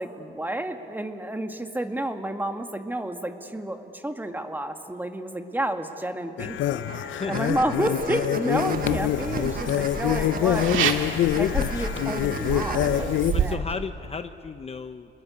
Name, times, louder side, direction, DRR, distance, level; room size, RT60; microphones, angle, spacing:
voice 1, 0.0-13.1 13.4-13.6, right 1 dB, 10° right, 6 dB, 1.9 m, -31 dB
sound 1, 6.4-13.3, left 12 dB, 75° left, 0.6 m, -25 dB
sound 2, 6.9-12.9, right 6 dB, 45° right, 1.3 m, -36 dB
sound 3, 8.5-13.6, right 8 dB, 80° right, 1.9 m, -30 dB
voice 2, 13.3-15.2, left 5 dB, 30° left, 9 dB, 0.8 m, -34 dB
28.5 x 21.0 x 8.4 m, 2.7 s
cardioid pair, 90°, 20 cm